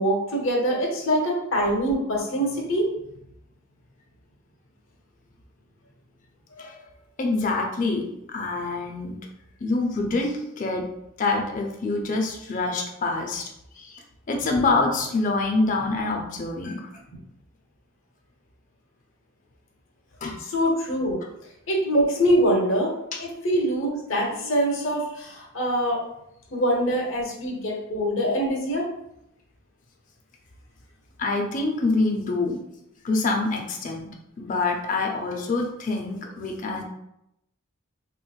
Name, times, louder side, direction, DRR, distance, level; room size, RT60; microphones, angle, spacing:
voice 1, 0.0-2.9 20.4-21.2 21.7-22.9 23.2-26.0 26.5-28.9, equal, 70° left, -1 dB, 0.9 m, -24 dB
voice 2, 7.2-9.2 9.6-10.9 11.2-13.4 13.8-14.0 14.3-16.9 20.2-20.4 21.0-21.2 23.1-23.2 26.8-26.9 27.5-27.6 31.2-32.6 33.0-34.1 34.4-36.8, left 3 dB, 40° left, 1 dB, 0.5 m, -26 dB
3.5 x 3.0 x 2.3 m, 0.82 s
head